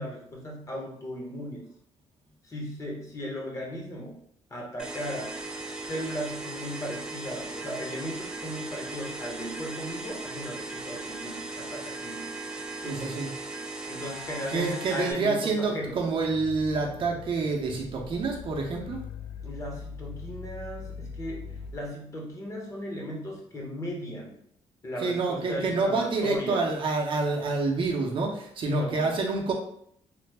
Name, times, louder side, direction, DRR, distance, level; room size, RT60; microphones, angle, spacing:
voice 1, 0.0-1.7 2.4-4.2 4.5-5.4 5.9-12.3 12.8-13.2 13.9-16.0 19.4-21.4 21.7-24.3 24.8-26.7 28.7-29.1, equal, 30° left, -1 dB, 0.8 m, -36 dB
sound 1, 4.8-15.1, right 2 dB, 5° right, 0.4 m, -38 dB
voice 2, 12.8-13.3 14.5-19.0 25.0-29.5, right 3 dB, 50° right, 0 dB, 0.6 m, -27 dB
sound 2, 15.8-21.8, left 5 dB, 75° left, 0.5 m, -42 dB
3.2 x 2.0 x 3.3 m, 0.67 s
cardioid pair, 130°, 11 cm